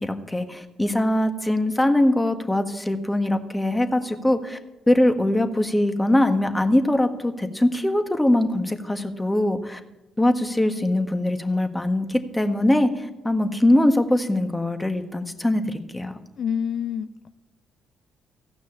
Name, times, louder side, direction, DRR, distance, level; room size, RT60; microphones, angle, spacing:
voice 1, 0.0-4.6 4.9-9.8 10.2-16.1, left 1 dB, 15° left, 7 dB, 1.5 m, -22 dB
voice 2, 16.4-17.3, left 7 dB, 60° left, 11 dB, 0.4 m, -27 dB
15.0 x 6.1 x 8.6 m, 1.0 s
hypercardioid pair, 50°, 0 cm